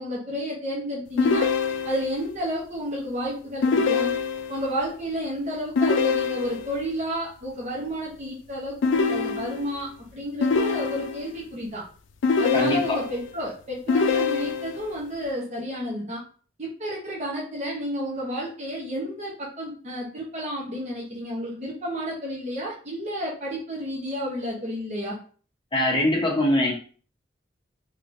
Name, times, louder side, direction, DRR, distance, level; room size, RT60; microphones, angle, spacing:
voice 1, 0.0-1.5 1.8-4.1 4.5-11.8 12.4-16.2 16.6-25.2, equal, 40° right, -4 dB, 0.8 m, -31 dB
sound 1, 1.2-2.2 3.6-4.7 5.8-6.8 8.8-9.8 10.4-11.4 12.2-13.3 13.9-14.9, left 5 dB, 90° left, 0.4 m, -24 dB
voice 2, 12.5-13.0 25.7-26.7, left 1 dB, 25° left, -1 dB, 0.9 m, -22 dB
3.5 x 2.9 x 2.6 m, 0.41 s
head